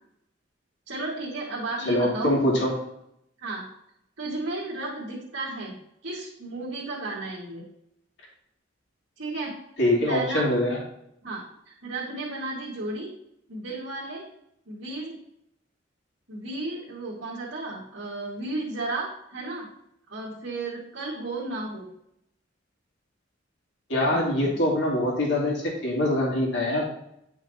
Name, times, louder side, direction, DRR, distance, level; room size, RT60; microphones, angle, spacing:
voice 1, 0.9-2.3 3.4-3.7 4.2-5.8 6.0-7.7 9.2-9.6 10.1-10.4 11.2-13.1 13.5-14.2 14.7-15.2 16.3-19.7 20.1-21.9, right 2 dB, 80° right, -9 dB, 2.1 m, -33 dB
voice 2, 1.9-2.7 9.8-10.8 23.9-26.9, left 1 dB, 65° left, -3 dB, 2.6 m, -24 dB
9.9 x 5.8 x 2.9 m, 0.76 s
head